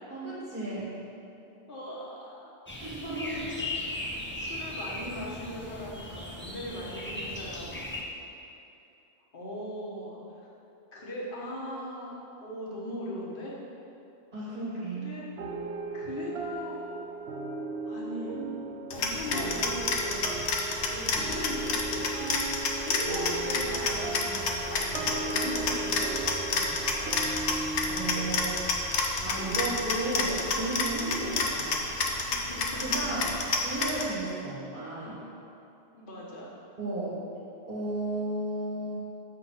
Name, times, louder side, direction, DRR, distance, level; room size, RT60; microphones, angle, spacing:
voice 1, 0.1-0.9 2.8-3.4 14.3-15.2 27.9-28.7 29.2-31.9 32.8-33.3 33.6-35.2 36.8-37.2 37.7-39.0, right 2 dB, 50° right, -9 dB, 1.8 m, -34 dB
voice 2, 1.7-2.5 3.4-7.8 9.3-10.5 10.9-12.1 12.4-13.5 14.9-15.3 15.9-17.0 17.8-18.4 18.9-22.3 22.8-27.1 32.2-33.4 35.9-36.5, left 1 dB, 50° left, -6 dB, 1.4 m, -40 dB
sound 1, 2.7-8.0, left 1 dB, 15° left, 0.6 m, -37 dB
sound 2, 15.4-32.2, right 3 dB, 75° right, 1.0 m, -37 dB
sound 3, 18.9-34.0, left 3 dB, 75° left, 1.0 m, -30 dB
7.1 x 4.1 x 5.6 m, 2.8 s
omnidirectional pair, 1.1 m